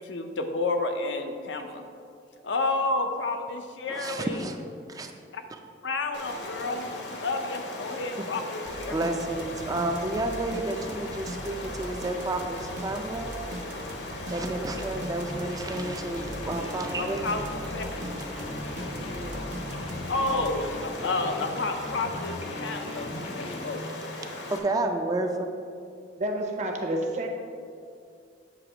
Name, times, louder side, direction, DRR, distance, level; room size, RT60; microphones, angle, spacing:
voice 1, 0.0-1.9 2.4-4.4 5.3-5.4 5.8-8.9 17.0-17.9 20.1-23.8, left 2 dB, 85° left, 6 dB, 0.6 m, -30 dB
voice 2, 3.9-4.6 4.9-5.1 6.7-6.8 8.2-8.3 8.9-13.3 14.3-17.4 23.1-23.2 23.6-23.9 24.5-25.5, right 2 dB, 20° right, 4 dB, 0.4 m, -31 dB
Stream, 6.1-24.6, left 2 dB, 65° left, 0.9 m, -38 dB
sound 1, 8.6-20.9, right 1 dB, 85° right, 0.8 m, -40 dB
sound 2, 14.9-23.8, left 1 dB, 35° left, 0.5 m, -39 dB
voice 3, 26.2-27.3, right 1 dB, 40° right, 2 dB, 0.8 m, -29 dB
8.3 x 3.0 x 5.9 m, 2.3 s
head